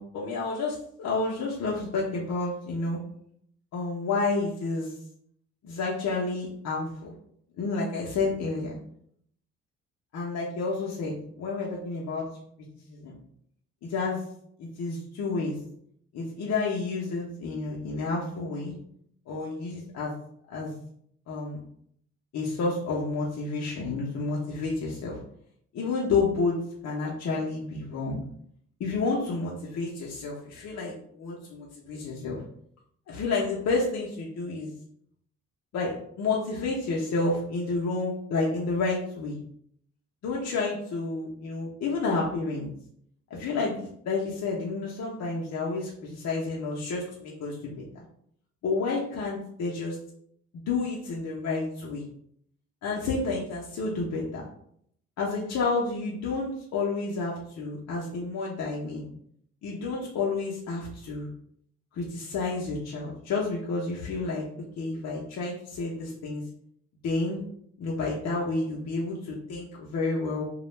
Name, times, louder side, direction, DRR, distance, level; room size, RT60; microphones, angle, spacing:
voice 1, 0.0-3.0 3.7-4.9 5.6-7.1 7.6-8.8 10.1-12.3 12.9-13.2 13.8-14.2 14.6-15.6 16.1-18.8 19.3-20.1 20.5-20.7 21.3-21.6 22.3-25.2 25.7-26.6 26.8-28.2 28.8-32.4 33.1-34.7 35.7-39.4 40.2-42.7 43.3-43.8 44.0-47.8 48.6-50.0 50.5-52.0 52.8-54.4 55.2-59.1 59.6-61.3 61.9-64.4 64.8-66.4 67.0-67.4 67.8-70.4, left 3 dB, 60° left, -4 dB, 0.6 m, -30 dB
2.3 x 2.1 x 3.0 m, 0.67 s
cardioid pair, 90°, 30 cm